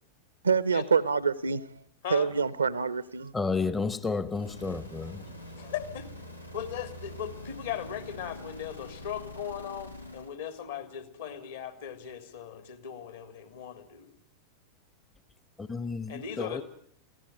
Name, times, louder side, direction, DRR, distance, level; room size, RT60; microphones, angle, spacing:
voice 1, 0.4-1.8 2.1-3.3, right 5 dB, 75° right, 0.9 m, -26 dB
voice 2, 3.3-5.3 15.6-16.6, left 4 dB, 15° left, 0.9 m, -31 dB
sound 1, 4.3-10.4, left 1 dB, 85° left, 1.7 m, -45 dB
voice 3, 5.6-6.1 6.5-14.1 16.1-16.6, left 9 dB, 65° left, 3.3 m, -38 dB
24.0 x 16.5 x 9.3 m
figure-of-eight pair, 90°, 0 cm